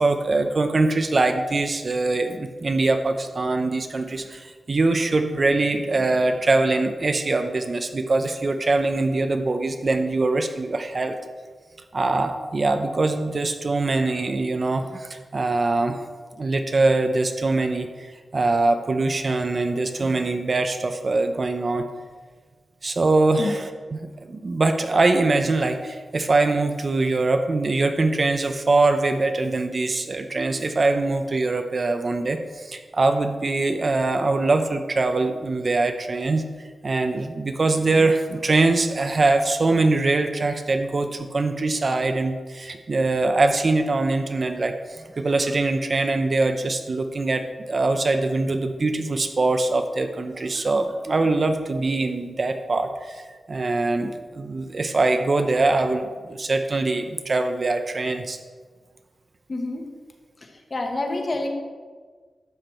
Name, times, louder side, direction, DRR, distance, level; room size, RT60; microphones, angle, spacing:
voice 1, 0.0-11.2 11.9-16.0 16.4-21.9 22.8-58.4, right 3 dB, 35° right, 7 dB, 0.6 m, -23 dB
voice 2, 59.5-59.8 60.7-61.5, left 2 dB, 35° left, 3 dB, 1.3 m, -27 dB
12.0 x 8.0 x 4.4 m, 1.5 s
wide cardioid pair, 175°, 0 cm